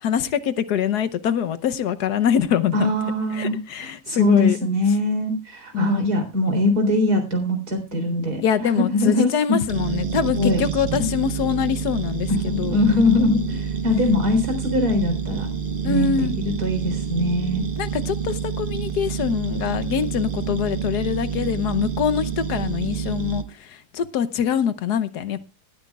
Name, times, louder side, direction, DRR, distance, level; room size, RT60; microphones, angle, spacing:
voice 1, 0.0-2.7 3.3-4.6 5.7-6.0 8.4-12.8 15.8-16.4 17.8-25.4, left 8 dB, 75° left, 1.4 m, -24 dB
voice 2, 2.7-9.3 10.3-10.6 11.0-11.1 12.3-15.5 15.9-17.6, left 2 dB, 65° right, 4.3 m, -22 dB
sound 1, 9.7-23.4, right 7 dB, 40° right, 1.0 m, -28 dB
19.0 x 13.5 x 2.3 m
omnidirectional pair, 1.8 m